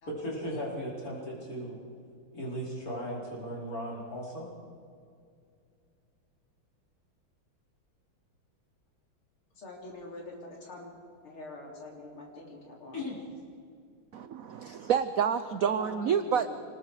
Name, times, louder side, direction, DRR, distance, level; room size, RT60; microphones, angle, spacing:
voice 1, 0.1-1.8 2.3-4.5 12.9-13.2, equal, 40° left, -3 dB, 5.0 m, -36 dB
voice 2, 9.6-10.9 11.2-13.0 14.6-14.7 15.8-16.6, left 2 dB, 85° left, -1 dB, 4.2 m, -45 dB
voice 3, 14.1-16.5, right 7 dB, 80° right, 11 dB, 0.7 m, -28 dB
26.5 x 19.5 x 4.9 m, 2.4 s
omnidirectional pair, 2.3 m